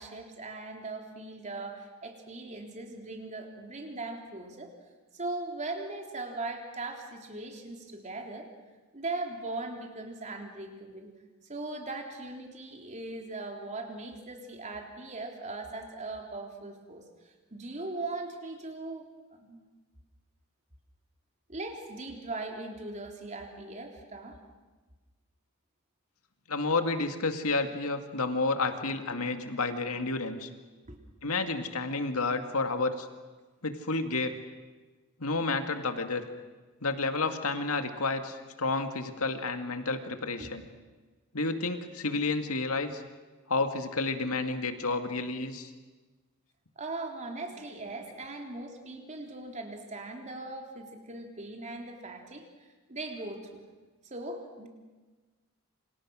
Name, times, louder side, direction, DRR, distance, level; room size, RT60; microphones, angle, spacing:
voice 1, 0.0-4.7 5.1-8.5 8.9-11.1 11.5-17.1 17.5-19.6 21.5-24.4 30.9-31.0 40.4-40.5 46.8-52.5 52.9-53.6 54.0-54.7, right 2 dB, 30° right, 2 dB, 3.5 m, -39 dB
voice 2, 26.5-30.5 31.2-33.1 33.6-34.4 35.2-36.2 36.8-40.6 41.3-43.0 43.5-45.7, left 3 dB, 70° left, 7 dB, 2.2 m, -30 dB
28.0 x 27.0 x 6.3 m, 1.3 s
head